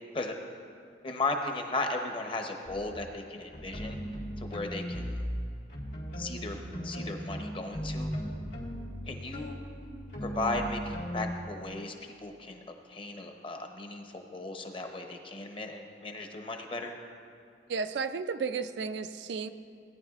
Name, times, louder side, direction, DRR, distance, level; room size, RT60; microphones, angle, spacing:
voice 1, 1.0-4.0 4.4-5.2 6.2-8.1 9.0-9.6 10.2-11.9 12.2-12.6 12.9-16.9, left 2 dB, 30° left, 4 dB, 0.7 m, -36 dB
sound 1, 2.6-3.0 3.5-5.4 5.7-11.3, equal, 80° left, 2.5 m, -37 dB
voice 2, 17.7-19.5, right 5 dB, 75° right, 11 dB, 0.4 m, -33 dB
17.5 x 9.7 x 2.4 m, 2.5 s
head